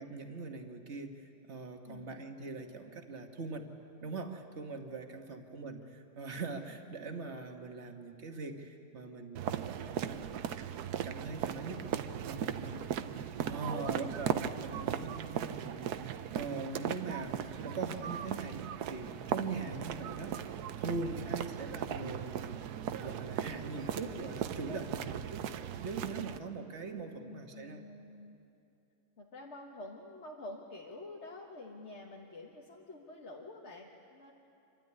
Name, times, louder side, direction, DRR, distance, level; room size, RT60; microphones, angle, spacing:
voice 1, 0.0-3.7 4.0-10.3 11.0-11.9 12.2-12.8 13.5-20.5 20.8-25.5 25.8-27.8, right 3 dB, 45° right, 5 dB, 1.6 m, -42 dB
voice 2, 1.8-2.2 12.6-13.0 13.6-13.9 19.5-19.7 21.1-21.3 27.2-28.4 29.2-34.3, left 2 dB, 45° left, -2 dB, 1.7 m, -48 dB
sound 1, 9.4-26.4, right 9 dB, 85° right, 1.3 m, -38 dB
27.0 x 12.5 x 9.6 m, 2.7 s
omnidirectional pair, 1.6 m